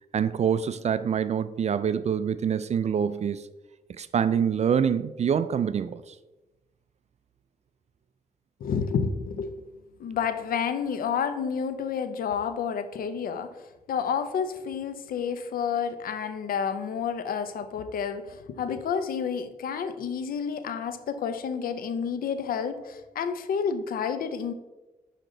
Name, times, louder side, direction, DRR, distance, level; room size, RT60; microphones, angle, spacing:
voice 1, 0.1-3.4 4.0-6.1, right 7 dB, 50° right, 13 dB, 0.4 m, -25 dB
voice 2, 8.6-9.5 10.0-13.5 13.9-24.5, left 6 dB, 85° left, 10 dB, 0.6 m, -30 dB
6.6 x 4.9 x 3.9 m, 1.1 s
cardioid pair, 80°, 15 cm